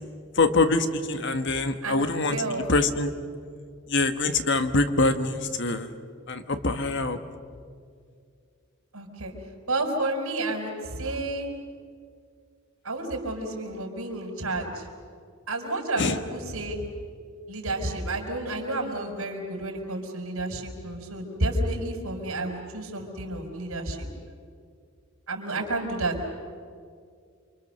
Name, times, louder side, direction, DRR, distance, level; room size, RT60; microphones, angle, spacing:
voice 1, 0.4-2.4 2.7-3.1 3.9-5.9 6.3-7.2 16.0-16.2, left 3 dB, 55° left, 8 dB, 1.4 m, -24 dB
voice 2, 2.3-2.6 8.9-9.3 9.7-11.5 12.8-14.9 15.5-16.8 17.5-24.1 25.3-26.2, right 2 dB, 85° right, 3 dB, 5.0 m, -30 dB
29.0 x 24.5 x 6.7 m, 2.2 s
head